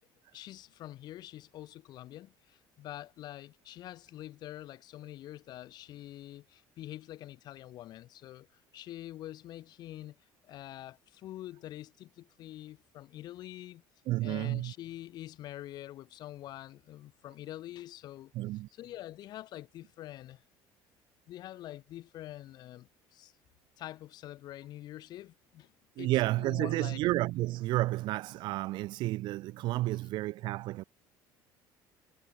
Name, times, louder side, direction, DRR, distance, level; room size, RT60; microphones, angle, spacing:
voice 1, 0.3-10.1 10.4-13.8 14.2-18.3 18.7-20.4 21.3-23.3 23.8-25.7 26.0-27.0, left 14 dB, 55° left, 2.9 m, -46 dB
voice 2, 14.1-14.7 18.3-18.7 26.0-30.8, right 17 dB, 60° right, 1.0 m, -31 dB
cardioid pair, 140°, 9 cm